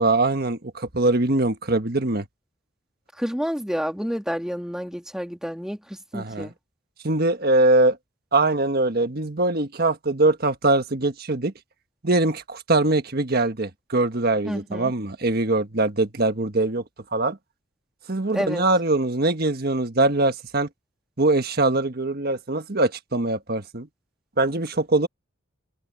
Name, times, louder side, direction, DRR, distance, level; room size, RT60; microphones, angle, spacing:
voice 1, 0.0-2.2 6.1-6.5 7.0-8.0 8.3-11.5 12.0-16.8 17.1-17.4 18.1-20.7 21.2-23.9 24.4-25.1, right 2 dB, 50° right, 1.5 m, -22 dB
voice 2, 3.2-6.5 14.4-14.9 18.3-18.6, equal, 5° right, 2.7 m, -29 dB
head